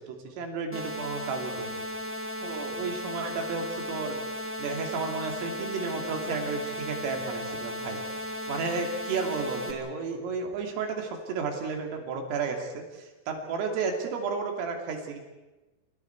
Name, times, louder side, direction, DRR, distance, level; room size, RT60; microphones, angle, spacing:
voice 1, 0.0-1.9 2.4-4.2 4.6-15.2, right 5 dB, 75° right, 3 dB, 5.3 m, -33 dB
sound 1, 0.7-9.7, left 1 dB, 5° right, 1.6 m, -36 dB
28.5 x 27.5 x 4.7 m, 1.2 s
omnidirectional pair, 6.0 m